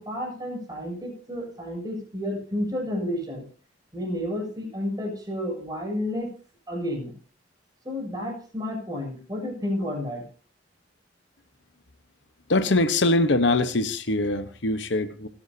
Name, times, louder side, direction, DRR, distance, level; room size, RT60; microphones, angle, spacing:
voice 1, 0.0-3.4 3.9-6.3 6.7-7.1 7.8-10.2, left 1 dB, 20° right, 0 dB, 7.3 m, -31 dB
voice 2, 12.5-15.3, left 2 dB, 70° left, 10 dB, 1.1 m, -23 dB
29.5 x 10.0 x 2.8 m, 0.38 s
head